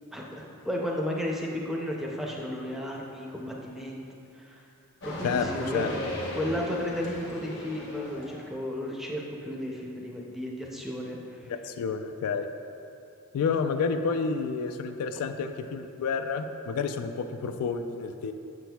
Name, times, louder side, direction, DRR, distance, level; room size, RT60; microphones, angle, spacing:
voice 1, 0.1-4.0 4.4-4.6 5.0-6.0 6.3-11.2, equal, ahead, -2 dB, 0.4 m, -33 dB
sound 1, 5.0-8.4, left 1 dB, 50° left, 1.0 m, -37 dB
voice 2, 5.2-5.9 11.5-12.5 13.3-18.3, left 5 dB, 80° left, 8 dB, 0.3 m, -30 dB
7.0 x 6.0 x 2.3 m, 2.6 s
head